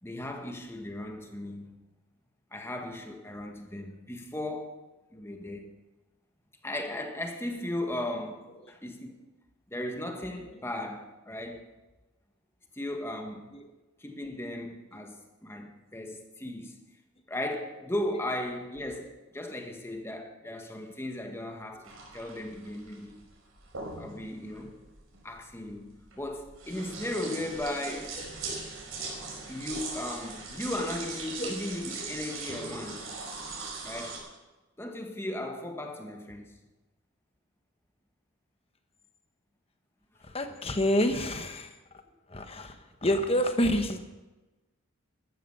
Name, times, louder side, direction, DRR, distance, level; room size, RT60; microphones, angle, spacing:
voice 1, 0.0-1.7 2.5-4.7 5.1-5.7 6.6-9.2 9.7-11.7 12.7-13.6 14.0-16.8 17.3-23.2 24.0-24.8 25.2-28.2 29.5-33.2 33.8-34.3 34.8-36.6, left 1 dB, 10° left, 1.4 m, -36 dB
sound 1, 21.8-34.2, right 3 dB, 75° right, 5.1 m, -40 dB
voice 2, 40.3-41.7 42.3-42.7 43.0-44.0, left 1 dB, 25° left, 1.1 m, -27 dB
14.0 x 12.5 x 5.6 m
head